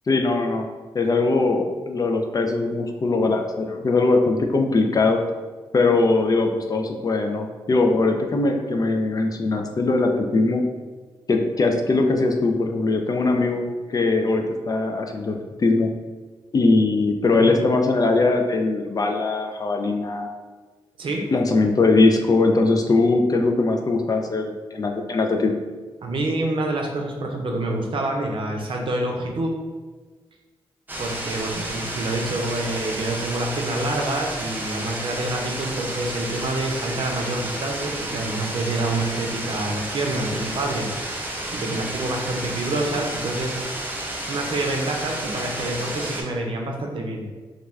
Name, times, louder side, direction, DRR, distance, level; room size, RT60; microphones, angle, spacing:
voice 1, 0.1-0.7 0.9-5.2 5.7-10.6 11.3-15.9 16.5-20.3 21.3-25.6, left 3 dB, 40° left, 4 dB, 0.4 m, -21 dB
voice 2, 26.0-29.5 31.0-40.9 41.5-43.6 44.2-47.3, right 2 dB, 60° right, 1 dB, 0.6 m, -27 dB
sound 1, 30.9-46.2, right 1 dB, 20° right, 0.6 m, -31 dB
2.3 x 2.2 x 3.1 m, 1.3 s
supercardioid pair, 45°, 10 cm